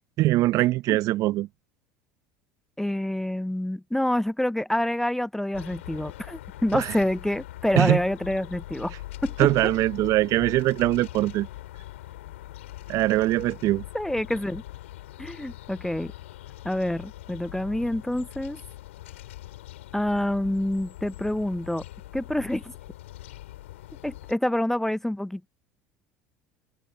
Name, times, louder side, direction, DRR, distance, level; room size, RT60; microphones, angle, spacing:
voice 1, 0.2-1.5 6.7-6.9 7.8-8.0 9.4-11.5 12.9-13.8, right 17 dB, 55° right, 0.6 m, -22 dB
voice 2, 2.8-8.9 9.2-9.5 13.9-14.6 15.2-16.1 16.6-18.6 19.9-21.8 22.1-22.7 24.0-25.5, left 1 dB, 5° left, 0.5 m, -27 dB
sound 1, 5.5-24.3, left 15 dB, 80° left, 3.0 m, -42 dB
hypercardioid pair, 75°, 7 cm